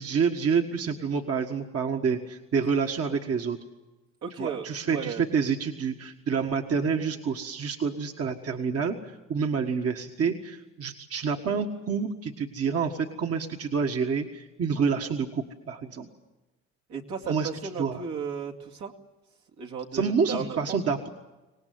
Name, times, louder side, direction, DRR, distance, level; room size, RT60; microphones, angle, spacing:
voice 1, 0.0-3.6 4.4-16.1 17.3-17.5 17.8-18.0 19.9-21.1, right 5 dB, 50° right, 3 dB, 1.7 m, -28 dB
voice 2, 4.2-5.2 16.9-18.9 19.6-20.8, right 6 dB, 75° right, 0 dB, 2.4 m, -35 dB
25.0 x 19.0 x 9.4 m, 1.1 s
cardioid pair, 90°, 30 cm